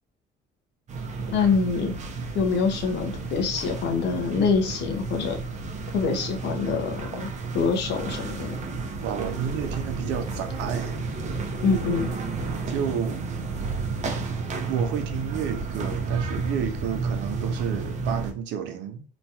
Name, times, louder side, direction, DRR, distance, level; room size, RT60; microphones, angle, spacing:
sound 1, 0.9-18.3, right 4 dB, 40° right, 0.6 m, -31 dB
voice 1, 1.3-1.9 2.3-5.4 5.9-8.6 11.6-12.1, left 5 dB, 70° left, 0.7 m, -25 dB
voice 2, 9.0-11.0 12.7-13.3 14.7-19.0, right 8 dB, 85° right, 0.5 m, -31 dB
3.0 x 2.2 x 2.7 m
cardioid pair, 90°, 18 cm